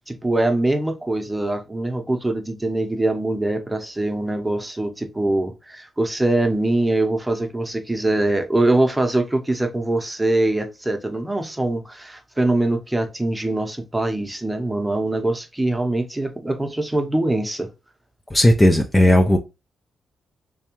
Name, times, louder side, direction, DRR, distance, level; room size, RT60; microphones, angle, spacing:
voice 1, 0.1-17.7, right 2 dB, 15° right, 0.9 m, -23 dB
voice 2, 18.3-19.4, equal, 15° left, 0.5 m, -15 dB
3.5 x 3.1 x 3.0 m
supercardioid pair, 55°, 0 cm